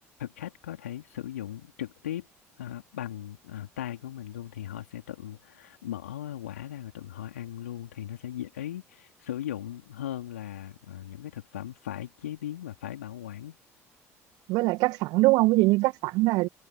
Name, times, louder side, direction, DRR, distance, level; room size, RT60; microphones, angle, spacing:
voice 1, 0.2-2.3 2.6-13.6, left 12 dB, 75° left, 3.8 m, -38 dB
voice 2, 14.5-16.5, right 22 dB, 60° right, 1.5 m, -22 dB
figure-of-eight pair, 55°, 8 cm